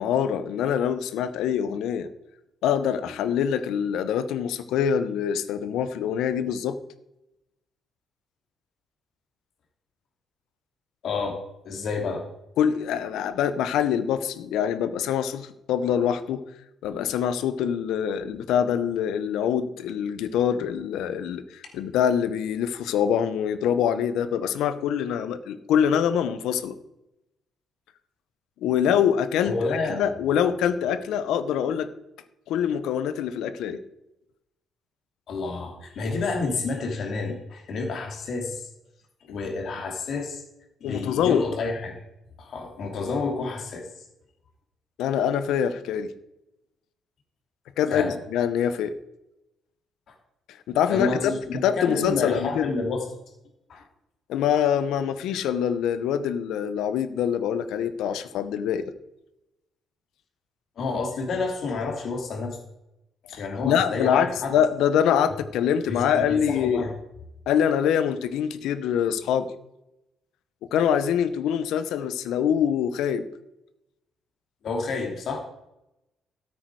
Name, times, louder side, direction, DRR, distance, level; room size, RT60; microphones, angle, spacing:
voice 1, 0.0-2.1 2.6-6.8 12.6-16.4 16.8-26.7 28.6-29.5 29.9-31.9 32.5-33.8 40.8-41.4 45.0-46.1 47.8-48.9 50.7-51.3 51.6-52.7 54.3-58.8 63.3-66.8 67.5-69.5 70.6-73.3, left 8 dB, 90° left, 12 dB, 1.0 m, -24 dB
voice 2, 11.0-12.2 29.4-30.0 35.3-38.7 39.3-40.4 40.8-42.0 42.4-43.9 47.9-48.2 50.9-53.1 53.7-53.8 60.8-62.6 63.3-64.6 65.9-66.9 74.6-75.4, left 4 dB, 55° left, 2 dB, 2.8 m, -29 dB
13.0 x 8.8 x 4.8 m, 0.90 s
cardioid pair, 140°, 0 cm